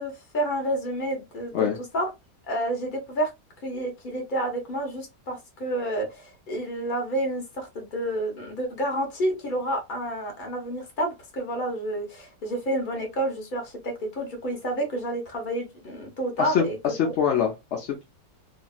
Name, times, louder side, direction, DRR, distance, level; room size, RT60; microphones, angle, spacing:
voice 1, 0.0-1.5 1.9-2.0 2.5-3.3 3.6-16.8 17.0-17.1, right 1 dB, 35° left, 1.0 m, -29 dB
voice 2, 16.4-18.0, left 7 dB, 70° left, 0.6 m, -25 dB
2.9 x 2.5 x 2.3 m
omnidirectional pair, 1.8 m